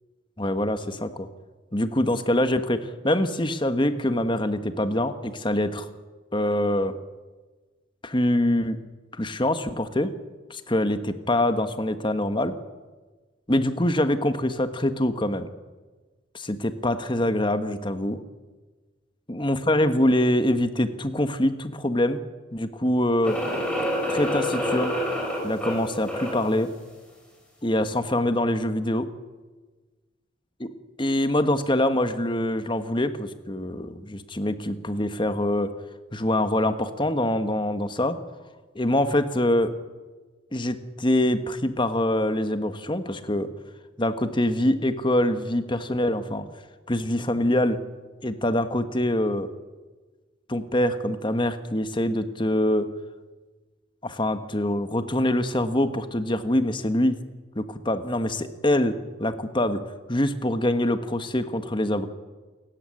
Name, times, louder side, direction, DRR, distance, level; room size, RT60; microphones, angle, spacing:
voice 1, 0.4-1.3 1.7-5.9 6.3-6.9 8.0-8.8 9.2-10.1 10.5-12.6 13.5-15.5 16.3-18.2 19.3-22.2 22.5-23.4 24.1-25.0 25.4-26.7 27.6-29.1 30.6-30.7 31.0-35.7 36.1-38.2 38.7-39.7 40.5-43.5 44.0-46.5 46.9-47.8 48.2-49.5 50.5-52.9 54.0-57.2 57.5-59.8 60.1-62.1, left 1 dB, 25° left, 9 dB, 1.5 m, -24 dB
sound 1, 23.2-26.5, left 1 dB, 5° left, 6.3 m, -28 dB
28.0 x 14.0 x 10.0 m, 1.3 s
head